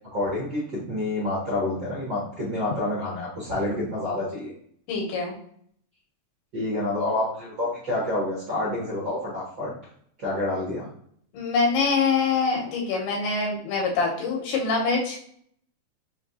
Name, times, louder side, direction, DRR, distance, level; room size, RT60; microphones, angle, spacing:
voice 1, 0.1-4.5 6.5-9.7 10.2-10.9, left 2 dB, 60° right, -8 dB, 1.1 m, -28 dB
voice 2, 4.9-5.3 11.3-15.3, left 4 dB, 90° left, -1 dB, 3.0 m, -25 dB
6.4 x 2.7 x 2.7 m, 0.64 s
omnidirectional pair, 4.4 m